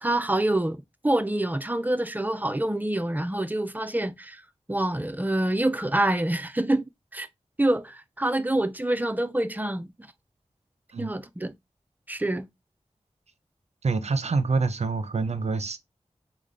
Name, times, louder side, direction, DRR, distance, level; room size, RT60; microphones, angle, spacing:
voice 1, 0.0-4.4 4.7-6.8 7.1-7.3 7.6-9.9 11.0-11.5 12.1-12.5, right 1 dB, 15° right, 0.5 m, -26 dB
voice 2, 13.8-15.8, right 4 dB, 70° right, 0.5 m, -26 dB
3.2 x 2.2 x 3.8 m
wide cardioid pair, 45°, 12 cm